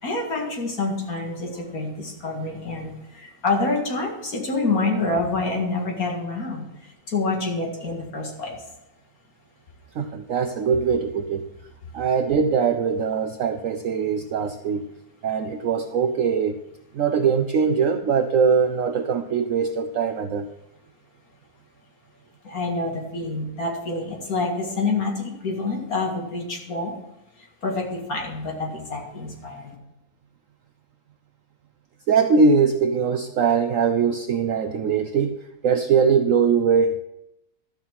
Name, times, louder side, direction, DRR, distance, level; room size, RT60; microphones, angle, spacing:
voice 1, 0.0-6.7 7.1-8.6 22.4-26.9 27.6-29.7, left 3 dB, 55° left, 1 dB, 2.4 m, -27 dB
voice 2, 10.0-11.5 11.9-14.9 15.2-16.6 16.9-20.5 32.1-35.4 35.6-37.0, right 5 dB, 65° right, 8 dB, 0.8 m, -21 dB
13.0 x 5.7 x 7.5 m, 0.88 s
omnidirectional pair, 1.9 m